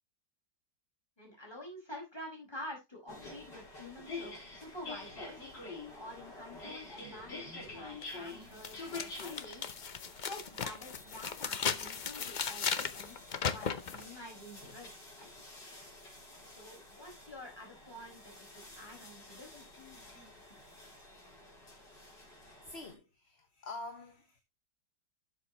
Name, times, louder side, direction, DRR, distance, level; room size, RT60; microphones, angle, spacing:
voice 1, 1.2-5.4 5.9-9.6 10.2-15.6 16.6-19.7, left 1 dB, 15° left, 5.2 m, -49 dB
sound 1, 3.1-22.9, left 3 dB, 85° left, 5.2 m, -48 dB
sound 2, 8.0-8.1 8.6-14.0, left 6 dB, 60° left, 0.4 m, -36 dB
voice 2, 22.6-24.4, left 2 dB, 40° left, 1.4 m, -46 dB
12.0 x 7.6 x 2.9 m
omnidirectional pair, 1.9 m